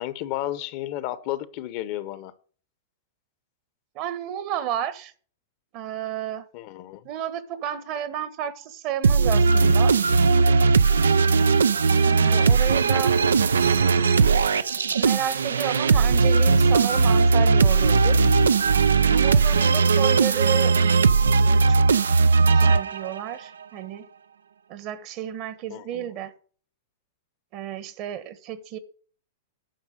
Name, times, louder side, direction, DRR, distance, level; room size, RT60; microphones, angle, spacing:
voice 1, 0.0-2.3 6.5-7.0 12.3-12.8 25.7-26.1, left 13 dB, 50° left, 0.9 m, -33 dB
voice 2, 3.9-5.1 5.7-6.5 7.0-10.0 12.0-13.1 14.9-18.2 19.0-20.7 21.4-21.9 22.3-24.0 24.7-26.3 27.5-28.8, right 10 dB, 45° right, 1.2 m, -32 dB
sound 1, 9.0-23.3, right 4 dB, 90° right, 0.4 m, -19 dB
10.5 x 5.5 x 6.5 m
hypercardioid pair, 115°, 0 cm